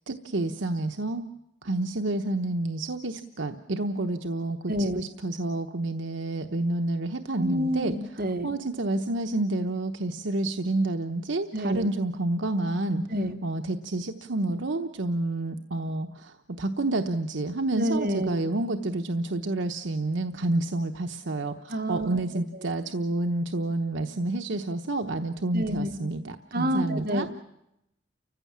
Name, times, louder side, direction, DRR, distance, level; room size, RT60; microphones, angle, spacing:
voice 1, 0.1-1.3 1.6-7.9 8.4-13.0 13.4-27.3, right 2 dB, 70° right, 5 dB, 1.0 m, -29 dB
voice 2, 4.7-5.0 7.4-8.6 11.5-11.9 13.1-13.4 17.7-18.4 21.7-22.2 25.5-26.0 26.5-27.3, equal, 50° right, 4 dB, 1.6 m, -28 dB
30.0 x 15.0 x 7.4 m, 0.83 s
head